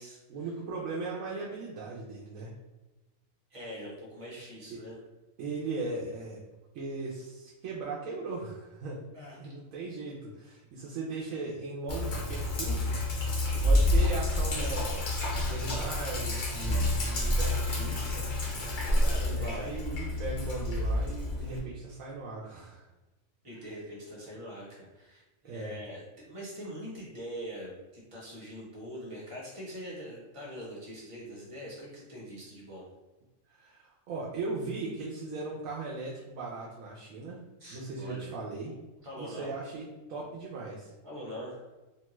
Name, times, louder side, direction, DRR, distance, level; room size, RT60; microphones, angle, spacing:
voice 1, 0.3-2.5 4.7-4.8 5.4-6.4 6.7-9.0 9.4-18.3 19.3-22.9 25.4-25.8 33.6-37.4 37.7-38.7 39.2-40.9, right 3 dB, 80° right, -4 dB, 1.0 m, -38 dB
voice 2, 3.5-5.0 9.1-9.5 19.0-19.7 23.4-32.8 37.6-38.3 39.0-39.5 41.0-41.6, equal, 30° right, -5 dB, 0.8 m, -43 dB
Sink (filling or washing), 11.9-21.6, left 1 dB, 55° left, 0.6 m, -29 dB
2.9 x 2.2 x 3.0 m, 1.1 s
omnidirectional pair, 1.4 m